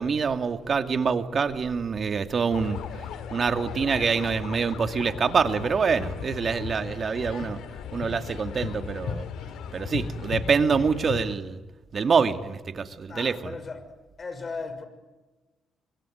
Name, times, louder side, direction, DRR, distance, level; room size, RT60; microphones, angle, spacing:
voice 1, 0.0-2.8 3.3-7.6 7.9-9.2 9.7-11.6 11.9-13.6, right 5 dB, 45° right, 2.4 m, -25 dB
sound 1, 2.5-11.4, left 7 dB, 80° left, 2.6 m, -36 dB
voice 2, 13.1-13.8 14.2-14.8, left 4 dB, 40° left, 6.0 m, -37 dB
25.5 x 24.5 x 9.4 m
cardioid pair, 90°, 0 cm